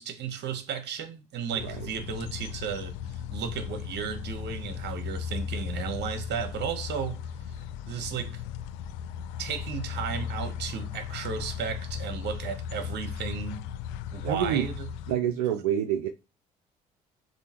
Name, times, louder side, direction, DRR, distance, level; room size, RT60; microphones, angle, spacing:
voice 1, 0.0-2.9 3.3-7.2 7.9-8.4 9.4-13.6 14.1-14.9, right 7 dB, 65° right, 1.0 m, -34 dB
sound 1, 1.5-15.1, left 8 dB, 80° left, 0.5 m, -36 dB
voice 2, 1.5-1.9 14.2-14.7 15.1-16.1, right 9 dB, 90° right, 0.5 m, -27 dB
6.6 x 2.7 x 2.9 m
hypercardioid pair, 55°, 19 cm